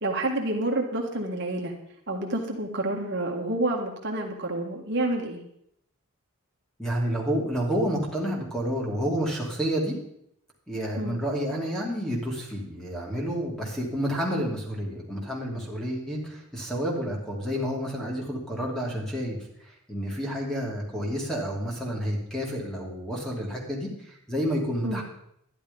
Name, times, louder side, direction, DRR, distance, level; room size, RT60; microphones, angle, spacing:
voice 1, 0.0-1.7 2.1-5.4 11.0-11.2 24.8-25.0, right 2 dB, 50° right, 1 dB, 1.7 m, -28 dB
voice 2, 6.8-10.0 10.7-25.0, equal, ahead, -2 dB, 2.7 m, -30 dB
12.0 x 11.0 x 5.4 m, 0.74 s
head